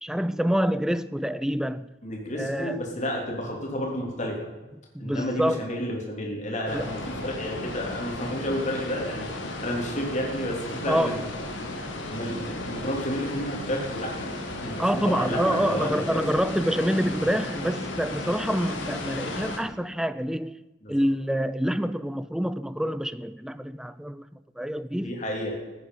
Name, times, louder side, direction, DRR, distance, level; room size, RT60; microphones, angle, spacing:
voice 1, 0.0-1.9 2.4-2.8 4.9-5.6 6.7-6.9 10.9-11.2 14.8-20.6 20.9-24.3 24.6-25.2, equal, 5° right, 0.3 m, -27 dB
voice 2, 2.0-4.5 5.0-9.3 9.6-11.2 12.1-14.3 14.6-16.2 20.8-20.9 25.0-25.6, equal, 40° left, 3.2 m, -31 dB
sound 1, 6.7-19.6, left 2 dB, 75° left, 2.2 m, -35 dB
15.0 x 9.4 x 5.6 m
head